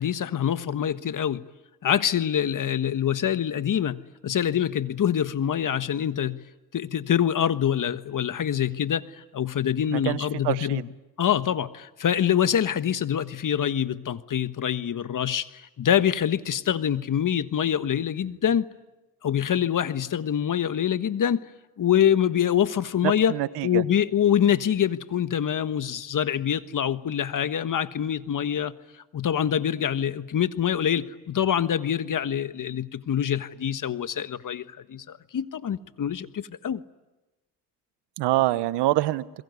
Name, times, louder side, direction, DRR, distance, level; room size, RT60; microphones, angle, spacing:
voice 1, 0.0-1.4 1.8-6.4 6.7-9.0 9.3-10.8 11.2-15.5 15.8-18.7 19.2-21.4 21.8-23.3 23.6-28.7 29.1-36.8, left 9 dB, 50° left, 12 dB, 1.5 m, -25 dB
voice 2, 9.9-10.8 23.0-23.8 38.2-39.2, right 16 dB, 80° right, 17 dB, 1.1 m, -25 dB
28.0 x 22.0 x 9.6 m, 1.0 s
supercardioid pair, 65°, 40 cm